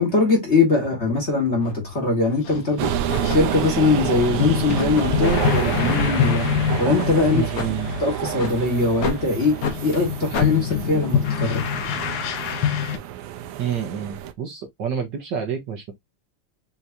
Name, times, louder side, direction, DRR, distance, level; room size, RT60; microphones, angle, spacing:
voice 1, 0.0-2.9 3.3-6.5 6.8-7.5 8.0-11.6, left 3 dB, 30° left, 1.8 m, -21 dB
sound 1, 1.6-1.8 2.4-2.7 3.1-6.5 6.9-7.1 7.5-7.7 8.3-8.6 9.0-9.2 9.6-9.8 10.3-10.5, left 4 dB, 50° left, 1.4 m, -31 dB
sound 2, 2.5-2.6 2.8-2.9 3.2-13.0, left 9 dB, 65° left, 1.5 m, -26 dB
sound 3, 2.8-14.3, right 9 dB, 90° right, 1.6 m, -28 dB
voice 2, 7.3-7.9 13.6-15.9, right 8 dB, 60° right, 1.4 m, -28 dB
5.8 x 3.1 x 2.6 m
omnidirectional pair, 2.4 m